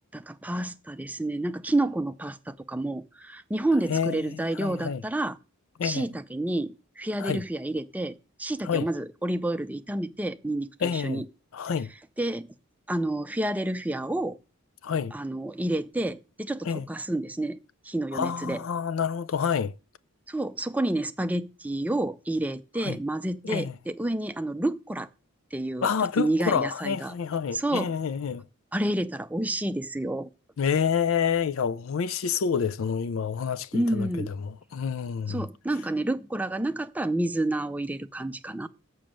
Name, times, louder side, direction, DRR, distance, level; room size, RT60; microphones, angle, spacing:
voice 1, 0.1-5.4 5.8-11.2 12.2-12.5 12.9-14.4 15.1-17.6 17.8-18.6 20.3-25.1 25.5-25.9 26.2-27.1 27.5-27.9 28.7-30.3 33.7-34.3 35.3-38.7, right 1 dB, 5° right, 0.4 m, -29 dB
voice 2, 3.9-5.0 5.8-6.1 7.2-7.4 8.6-8.9 10.8-11.2 11.5-11.9 14.8-15.1 16.6-16.8 18.1-19.7 22.8-23.0 23.4-23.7 25.8-28.4 30.6-35.5, left 6 dB, 70° left, 0.4 m, -28 dB
7.0 x 6.2 x 7.5 m
head